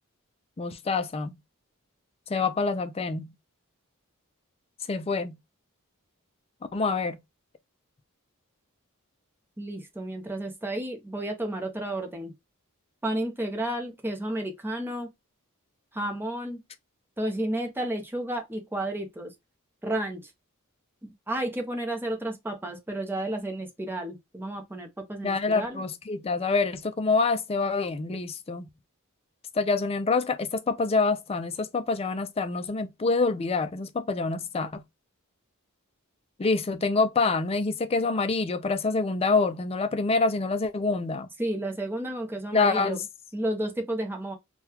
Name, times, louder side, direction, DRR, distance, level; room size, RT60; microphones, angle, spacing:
voice 1, 0.6-1.4 2.3-3.3 4.9-5.4 6.7-7.2 25.2-28.7 29.6-34.8 36.4-41.3 42.5-43.0, left 4 dB, 25° left, 0.4 m, -26 dB
voice 2, 9.6-12.3 13.0-15.1 15.9-16.6 17.2-19.3 19.8-20.3 21.0-25.8 41.4-43.0 43.3-44.4, right 1 dB, 10° right, 0.7 m, -32 dB
3.7 x 2.3 x 2.8 m
head